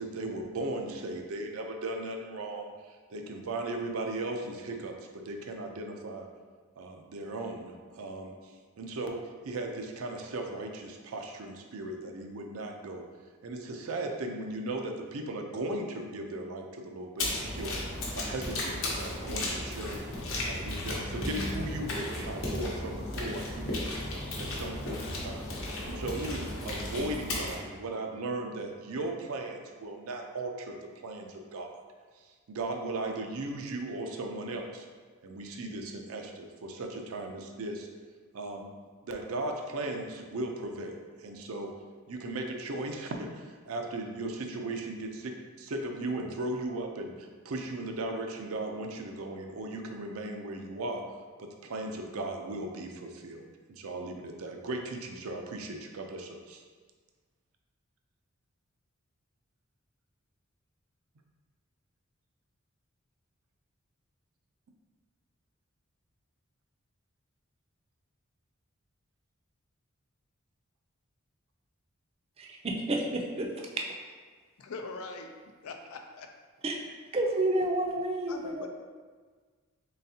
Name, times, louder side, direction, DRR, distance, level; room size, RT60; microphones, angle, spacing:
voice 1, 0.0-6.3 6.8-13.0 13.4-17.8 18.1-20.1 20.4-23.9 24.4-25.5 25.9-30.8 31.0-31.8 32.1-34.9 35.2-37.9 38.3-38.7 39.0-41.7 42.1-51.0 51.4-56.6, right 2 dB, 85° right, 3 dB, 0.5 m, -37 dB
sound 1, 17.2-27.5, left 1 dB, 70° left, 0.9 m, -35 dB
voice 2, 72.4-73.7 76.6-76.8 77.1-78.7, right 1 dB, 30° right, 1 dB, 0.4 m, -30 dB
voice 3, 74.6-75.3 75.6-76.3 78.3-78.7, left 3 dB, 90° left, 4 dB, 0.4 m, -41 dB
3.9 x 3.3 x 2.7 m, 1.5 s
head